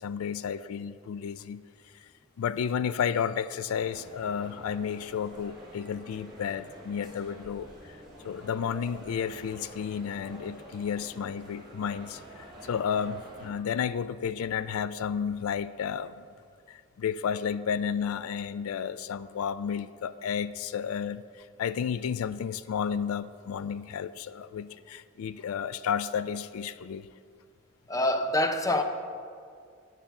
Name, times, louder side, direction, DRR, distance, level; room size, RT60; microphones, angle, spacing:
voice 1, 0.0-1.6 2.4-8.0 8.2-16.2 16.7-27.1, left 7 dB, 90° left, 0.3 m, -32 dB
sound 1, 3.6-13.5, right 1 dB, ahead, 2.5 m, -48 dB
voice 2, 27.9-28.8, left 1 dB, 15° left, 0.6 m, -25 dB
9.1 x 7.4 x 7.1 m
head